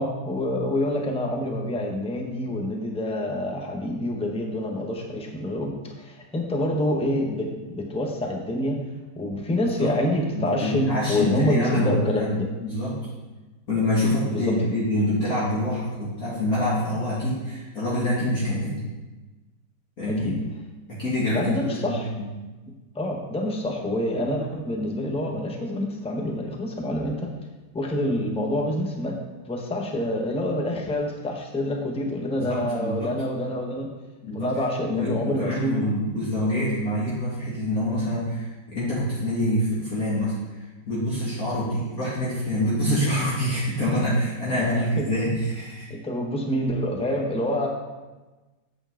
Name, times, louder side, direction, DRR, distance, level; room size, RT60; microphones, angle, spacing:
voice 1, 0.0-8.8 9.2-12.5 14.3-14.8 20.2-20.4 21.3-22.1 22.9-27.3 27.7-29.2 29.5-33.9 34.3-35.8 41.5-41.7 44.6-45.1 45.9-47.7, left 1 dB, 5° left, 1 dB, 0.5 m, -27 dB
voice 2, 10.3-12.3 12.6-12.9 13.7-18.8 20.0-20.3 20.9-22.3 32.4-33.1 34.2-34.5 34.9-40.3 40.8-45.9, left 1 dB, 50° left, -9 dB, 2.5 m, -26 dB
9.0 x 8.0 x 3.8 m, 1.2 s
omnidirectional pair, 2.0 m